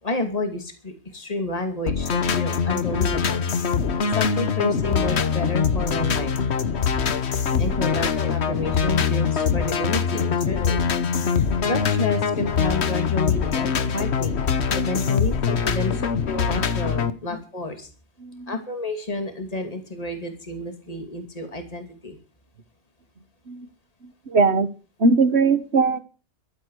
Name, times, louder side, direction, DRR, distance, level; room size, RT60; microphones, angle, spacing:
voice 1, 0.0-3.4 4.1-6.4 7.5-10.9 11.3-17.9 18.5-22.2, left 2 dB, 35° left, 6 dB, 2.8 m, -30 dB
sound 1, 1.9-17.1, left 6 dB, 70° left, 1.4 m, -23 dB
voice 2, 7.5-8.0 15.9-16.1 18.2-18.6 23.5-23.7 24.0-24.7 25.0-26.0, right 4 dB, 70° right, 12 dB, 1.8 m, -22 dB
15.5 x 13.5 x 4.9 m, 0.36 s
omnidirectional pair, 1.2 m